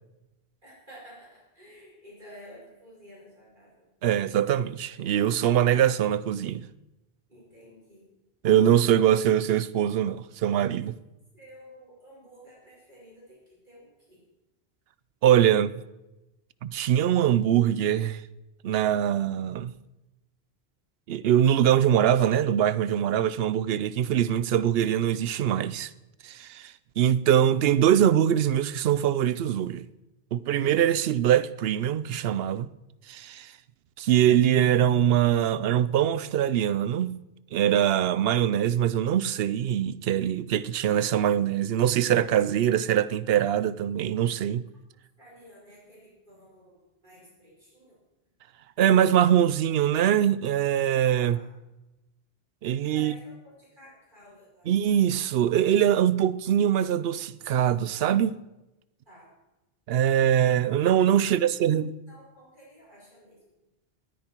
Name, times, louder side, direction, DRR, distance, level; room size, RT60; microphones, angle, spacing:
voice 1, 0.6-3.9 7.3-8.1 11.3-13.4 13.6-14.2 45.2-48.0 51.2-51.5 52.9-54.7 59.1-59.3 61.3-61.5 62.1-63.4, equal, 50° right, 5.7 m, -51 dB
voice 2, 4.0-6.7 8.4-11.0 15.2-15.8 16.6-18.2 18.6-19.7 21.1-25.9 26.2-29.8 30.3-32.7 33.1-33.5 34.0-37.2 37.5-44.7 48.8-51.4 52.6-53.2 54.7-58.4 59.9-62.0, right 10 dB, 75° right, 0.8 m, -23 dB
19.5 x 9.5 x 4.5 m
omnidirectional pair, 1.1 m